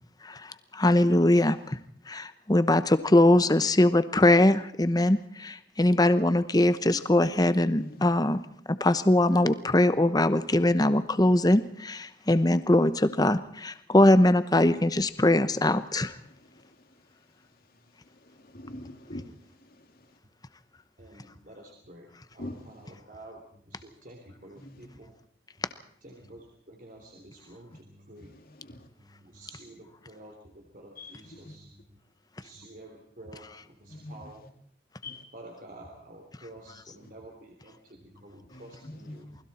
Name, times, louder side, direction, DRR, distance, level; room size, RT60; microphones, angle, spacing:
voice 1, 0.2-1.8 2.1-8.4 8.8-16.2, left 1 dB, 20° left, 12 dB, 0.9 m, -22 dB
voice 2, 16.2-16.9 18.0-20.2 22.4-22.8 24.5-24.9 27.7-27.8 28.2-28.9 31.0-31.6 33.9-34.5 35.0-35.2 38.5-39.2, left 1 dB, 50° left, 5 dB, 2.7 m, -45 dB
voice 3, 21.0-25.1 26.0-28.3 28.7-32.0 32.4-34.4 35.3-39.4, right 1 dB, 45° right, 1 dB, 3.5 m, -50 dB
28.5 x 21.0 x 4.3 m, 0.62 s
head